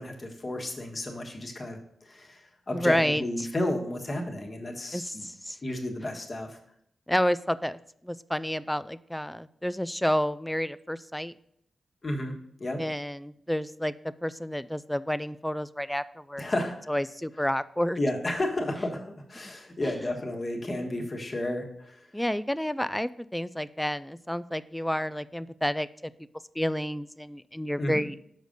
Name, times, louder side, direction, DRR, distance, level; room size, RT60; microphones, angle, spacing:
voice 1, 0.0-5.2 5.6-6.6 12.0-12.3 12.6-12.8 16.4-16.8 18.0-22.1 27.8-28.0, left 1 dB, 40° left, 2 dB, 1.4 m, -32 dB
voice 2, 2.7-3.2 4.9-5.6 7.1-11.3 12.8-13.9 14.2-16.4 16.9-18.0 19.8-19.9 22.1-26.1 26.6-28.2, equal, 5° left, 16 dB, 0.3 m, -30 dB
6.5 x 5.1 x 5.2 m, 0.70 s
cardioid pair, 70°, 0 cm